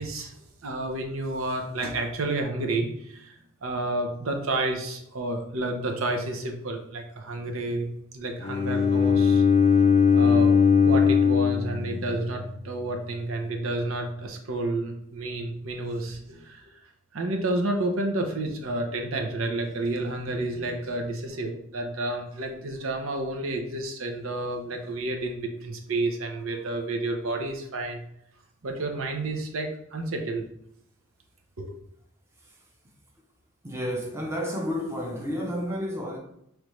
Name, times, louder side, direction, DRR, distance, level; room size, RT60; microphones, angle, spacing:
voice 1, 0.0-7.9 8.1-9.4 10.1-16.7 17.1-28.0 28.6-30.5 31.6-31.8, right 2 dB, 80° right, 0.7 m, -30 dB
Bowed string instrument, 8.4-12.5, left 6 dB, 30° left, 0.3 m, -20 dB
voice 2, 32.4-32.7 33.6-36.2, equal, 15° right, 0.7 m, -31 dB
5.1 x 3.2 x 3.1 m
head